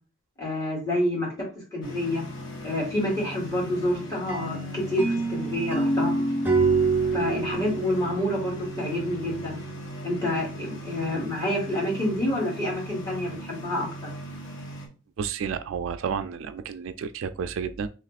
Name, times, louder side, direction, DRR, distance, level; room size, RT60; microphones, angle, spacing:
voice 1, 0.4-1.3 1.7-2.2 2.6-6.1 7.1-9.6 10.0-14.1, left 1 dB, 15° left, 2.0 m, -28 dB
sound 1, 1.8-14.9, right 1 dB, 65° left, 1.2 m, -39 dB
sound 2, 4.3-9.2, right 3 dB, 10° right, 0.9 m, -26 dB
voice 2, 15.2-17.9, right 6 dB, 70° right, 0.3 m, -31 dB
3.2 x 3.0 x 4.0 m
head